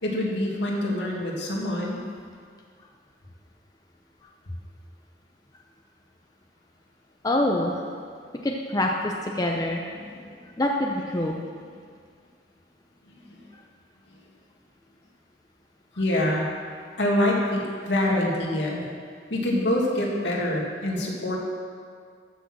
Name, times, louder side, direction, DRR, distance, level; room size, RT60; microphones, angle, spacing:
voice 1, 0.0-2.0 13.3-13.4 16.0-16.5 17.0-18.9 19.3-21.4, left 1 dB, 70° left, -2 dB, 2.2 m, -25 dB
voice 2, 7.2-7.8 8.4-9.8 10.6-11.4, left 1 dB, 20° left, 0 dB, 0.6 m, -25 dB
14.5 x 6.3 x 6.2 m, 2.1 s
head